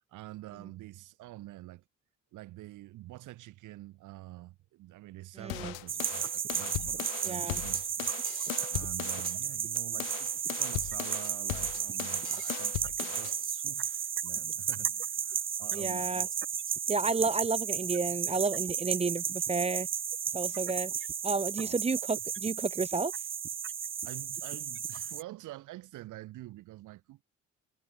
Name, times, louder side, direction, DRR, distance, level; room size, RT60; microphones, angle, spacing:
voice 1, 0.0-1.8 2.3-16.3 16.9-17.1 17.8-18.2 21.6-21.8 24.0-27.2, right 17 dB, 70° right, 3.9 m, -47 dB
voice 2, 5.4-5.7 7.2-7.6 15.7-16.3 16.9-19.9 20.3-20.9 21.2-23.1, right 4 dB, 20° right, 0.7 m, -31 dB
sound 1, 5.5-9.4 9.7-13.4, left 40 dB or more, 80° left, 1.4 m, -38 dB
sound 2, 5.9-25.2, right 8 dB, 40° right, 1.1 m, -34 dB
hypercardioid pair, 55°, 31 cm